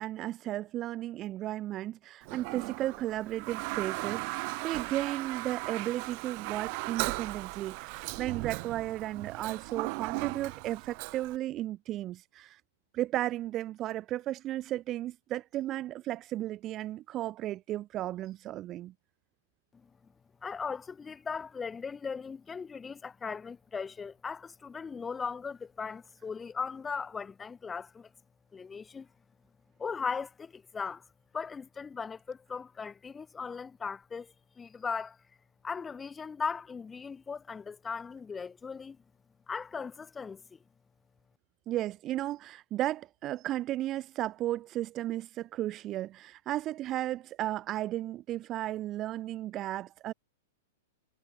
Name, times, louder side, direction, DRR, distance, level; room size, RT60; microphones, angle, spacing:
voice 1, 0.0-12.6 12.9-18.9 41.7-50.1, right 14 dB, 30° right, 1.0 m, -34 dB
Toilet flush, 2.2-11.4, right 36 dB, 45° right, 1.6 m, -37 dB
voice 2, 20.4-28.1 28.5-29.1 29.8-31.0 31.3-35.2 35.6-39.0 39.5-40.6, left 5 dB, 15° left, 2.2 m, -38 dB
hypercardioid pair, 145°, 0 cm